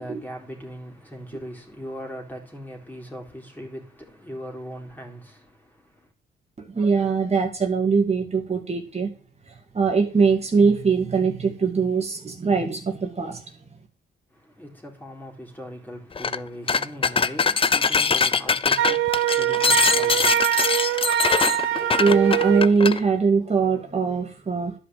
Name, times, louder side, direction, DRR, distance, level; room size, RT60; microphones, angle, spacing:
voice 1, 0.0-6.1 14.3-22.6, equal, 10° left, 3.6 m, -40 dB
voice 2, 6.6-9.1 9.5-13.4 22.0-24.7, right 5 dB, 30° right, 2.4 m, -22 dB
sound 1, 16.2-16.4 16.7-23.0, left 5 dB, 25° left, 0.6 m, -22 dB
Wind instrument woodwind instrument, 18.8-22.7, right 12 dB, 85° right, 0.8 m, -23 dB
11.5 x 5.4 x 7.6 m
cardioid pair, 90°, 20 cm